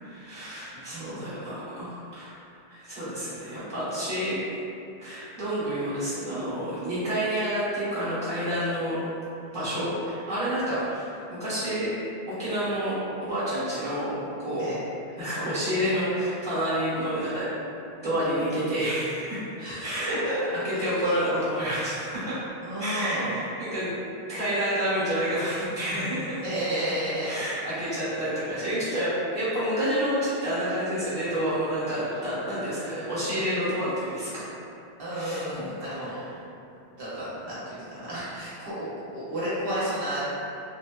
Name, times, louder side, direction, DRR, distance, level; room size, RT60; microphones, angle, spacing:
voice 1, 0.0-2.3 2.7-4.6 5.0-9.0 9.5-11.9 12.3-12.9 13.2-14.7 15.2-17.5 18.0-19.4 19.8-20.2 20.6-22.4 22.8-23.9 24.3-26.4 27.2-34.5 35.1-35.4, equal, 5° left, -11 dB, 0.8 m, -29 dB
voice 2, 0.7-1.3 9.5-9.7 14.6-14.8 19.6-20.4 20.7-20.9 22.6-23.4 26.4-27.4 35.0-36.3 37.0-38.9 39.1-40.2, equal, 60° right, -11 dB, 0.9 m, -32 dB
2.8 x 2.0 x 2.2 m, 2.6 s
omnidirectional pair, 1.1 m